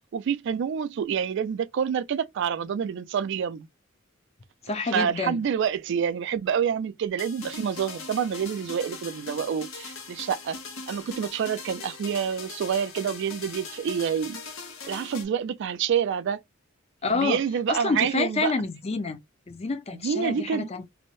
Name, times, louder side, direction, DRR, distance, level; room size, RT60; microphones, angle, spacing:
voice 1, 0.1-3.7 4.9-10.6 10.9-14.4 14.8-16.4 17.0-18.5 19.9-20.7, right 7 dB, 60° right, 0.3 m, -27 dB
voice 2, 4.6-5.4 17.0-17.4 17.7-19.2 19.5-20.8, left 4 dB, 30° left, 0.5 m, -28 dB
sound 1, 7.2-15.3, left 4 dB, 85° left, 0.8 m, -40 dB
2.6 x 2.1 x 3.0 m
head